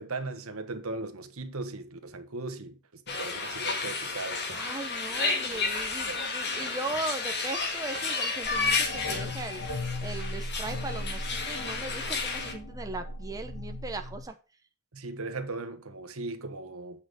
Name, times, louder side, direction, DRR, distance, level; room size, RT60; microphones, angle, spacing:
voice 1, 0.0-4.4 6.1-6.2 14.9-17.0, right 3 dB, 85° right, 1.3 m, -38 dB
sound 1, 3.1-12.5, left 4 dB, 55° left, 2.1 m, -32 dB
voice 2, 4.5-9.6 10.0-14.3, right 2 dB, 15° right, 0.8 m, -38 dB
sound 2, 4.5-4.8 5.5-5.9 6.6-7.1 7.9-8.4 9.1-9.4, right 4 dB, 55° right, 1.7 m, -48 dB
sound 3, 8.4-14.2, left 1 dB, 75° left, 1.6 m, -37 dB
8.8 x 5.8 x 5.1 m
head